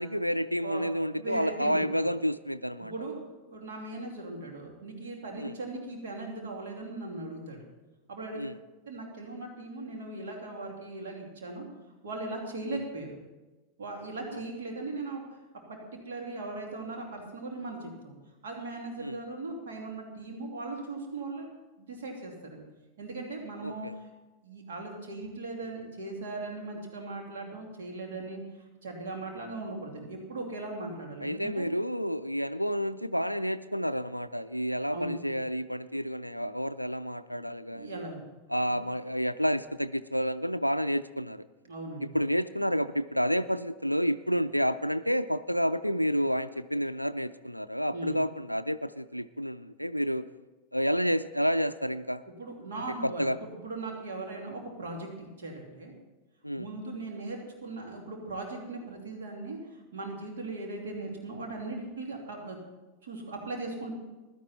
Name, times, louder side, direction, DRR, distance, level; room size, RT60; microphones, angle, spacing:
voice 1, 0.0-2.9 5.4-5.6 8.3-8.5 12.7-12.8 14.3-14.4 19.0-19.2 23.6-23.9 31.2-37.9 38.5-41.5 42.0-50.3 50.7-52.2 53.0-53.4 56.4-56.7, equal, 90° left, 12 dB, 0.3 m, -30 dB
voice 2, 1.1-1.8 2.8-3.2 3.5-7.6 8.1-8.4 8.9-11.7 12.0-13.2 13.8-15.3 15.5-18.1 18.4-21.5 21.8-22.6 23.0-23.9 24.4-28.4 28.8-31.7 34.9-35.1 37.7-38.2 38.7-38.8 41.6-42.1 47.9-48.2 52.4-55.9 56.6-62.6 63.0-63.9, right 2 dB, 60° right, 1 dB, 2.8 m, -39 dB
16.0 x 12.0 x 4.3 m, 1.2 s
figure-of-eight pair, 90°, 0 cm